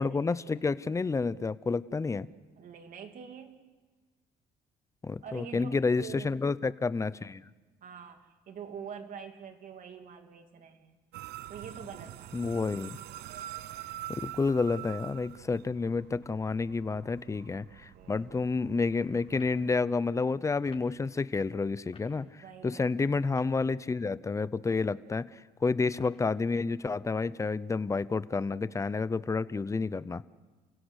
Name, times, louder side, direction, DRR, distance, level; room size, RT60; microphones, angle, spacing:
voice 1, 0.0-2.3 5.0-7.4 12.3-13.0 14.1-25.3 25.6-30.2, left 4 dB, 20° left, 17 dB, 0.7 m, -30 dB
voice 2, 2.6-3.6 5.2-6.3 7.8-11.0 11.5-12.3 17.9-18.3 22.4-22.9, right 7 dB, 55° right, 6 dB, 2.7 m, -45 dB
sound 1, 11.1-19.8, right 14 dB, 80° right, 0.7 m, -45 dB
sound 2, 19.3-19.6 20.6-20.9 21.9-22.1 23.2-23.6 24.5-24.9 26.0-26.3, left 4 dB, 35° left, 5.6 m, -53 dB
29.0 x 16.5 x 8.1 m, 1.3 s
cardioid pair, 110°, 17 cm